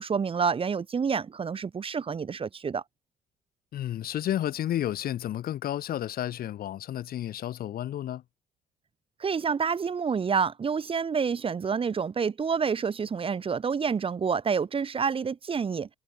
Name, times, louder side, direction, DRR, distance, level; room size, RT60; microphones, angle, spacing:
voice 1, 0.0-2.8 9.2-15.9, right 6 dB, 30° right, 2.1 m, -28 dB
voice 2, 3.7-8.2, left 12 dB, 60° left, 3.4 m, -31 dB
cardioid pair, 110°, 17 cm